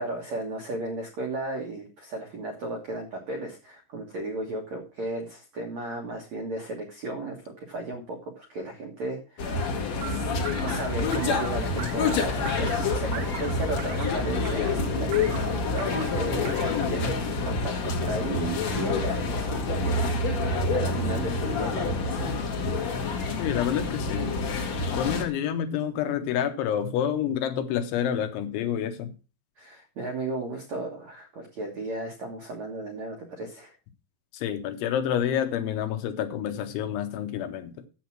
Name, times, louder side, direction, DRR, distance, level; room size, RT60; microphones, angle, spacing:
voice 1, 0.0-16.5 16.9-22.3 29.6-33.7, right 2 dB, 70° right, 1.6 m, -35 dB
sound 1, 9.4-25.2, left 3 dB, 60° left, 1.8 m, -27 dB
sound 2, 10.0-17.1, right 6 dB, 90° right, 1.7 m, -36 dB
voice 2, 23.4-24.3 25.0-29.1 34.3-37.7, left 9 dB, 75° left, 3.1 m, -28 dB
9.4 x 7.6 x 5.9 m
omnidirectional pair, 5.8 m